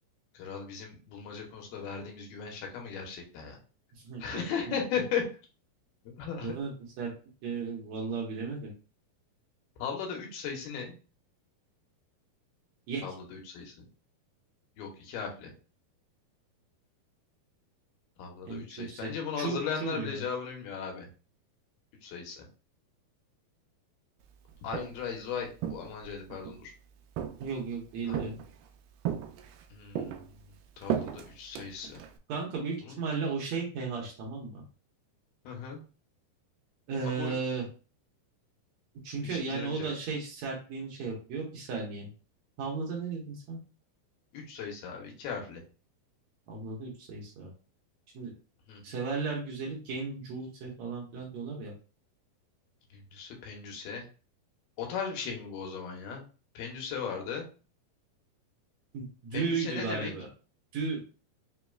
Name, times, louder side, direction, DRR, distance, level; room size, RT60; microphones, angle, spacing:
voice 1, 0.3-3.6 4.2-5.3 6.2-6.5 9.8-10.9 13.0-13.9 14.8-15.5 18.2-21.1 22.0-22.5 24.6-26.7 28.1-28.2 29.7-30.3 30.8-32.0 32.8-32.9 35.4-35.8 37.0-37.4 39.2-39.9 44.3-45.6 48.7-48.8 52.9-54.0 54.8-56.2 56.5-57.5 59.3-60.1, left 6 dB, 80° left, 1 dB, 2.9 m, -37 dB
voice 2, 4.0-4.7 6.4-6.7 7.0-7.1 7.4-8.7 12.9-13.0 18.4-20.2 27.4-28.4 32.3-34.6 36.9-37.7 39.0-42.1 42.6-43.6 46.5-47.5 48.1-48.3 48.8-51.7 58.9-60.3 60.7-61.0, right 4 dB, 70° right, -1 dB, 1.8 m, -35 dB
Walk footsteps, 24.5-25.1 25.6-26.6 27.2-27.7 28.1-28.7 29.1-29.7 30.0-32.2, right 9 dB, 85° right, 1.9 m, -36 dB
6.1 x 2.9 x 2.3 m, 0.35 s
omnidirectional pair, 4.3 m